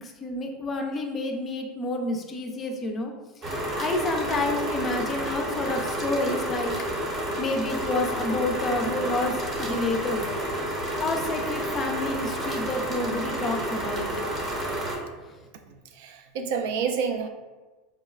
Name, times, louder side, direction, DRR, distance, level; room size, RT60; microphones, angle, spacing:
voice 1, 0.0-3.1 3.5-6.7 7.4-10.2 11.0-14.1, left 2 dB, 20° left, 3 dB, 0.4 m, -29 dB
sound 1, 3.4-15.0, right 1 dB, 25° right, 0.7 m, -30 dB
voice 2, 16.0-17.3, right 6 dB, 70° right, 6 dB, 0.3 m, -28 dB
4.7 x 2.1 x 2.3 m, 1.2 s
supercardioid pair, 160°, 0 cm